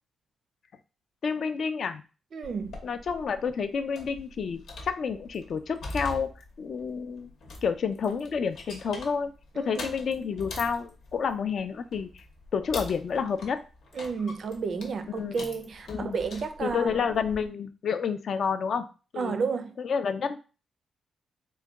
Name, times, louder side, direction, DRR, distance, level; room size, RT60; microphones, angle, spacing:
voice 1, 1.2-2.0 2.8-6.3 6.6-7.3 7.6-12.3 12.5-13.6 15.1-15.4 15.9-16.2 16.6-18.9 19.1-19.4 19.8-20.4, left 6 dB, 55° left, 0.3 m, -29 dB
voice 2, 2.3-2.8 9.6-9.9 14.0-16.9 19.2-19.7, right 5 dB, 50° right, 0.4 m, -31 dB
sound 1, 2.4-17.5, left 2 dB, 80° left, 0.9 m, -44 dB
3.8 x 2.2 x 3.5 m
wide cardioid pair, 140°, 0 cm